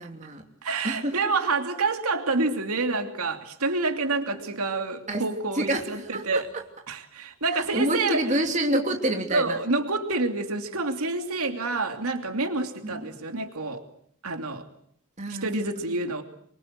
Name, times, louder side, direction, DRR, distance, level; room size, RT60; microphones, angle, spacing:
voice 1, 0.0-0.4 0.8-1.1 5.1-5.2 5.5-6.4 7.5-9.6 12.8-13.0 15.2-15.5, right 1 dB, 30° right, 3 dB, 2.9 m, -27 dB
voice 2, 0.6-6.5 6.9-8.2 9.3-13.8 14.2-14.6 15.3-16.2, right 3 dB, 90° right, 5 dB, 2.8 m, -28 dB
26.5 x 24.0 x 7.7 m, 0.63 s
head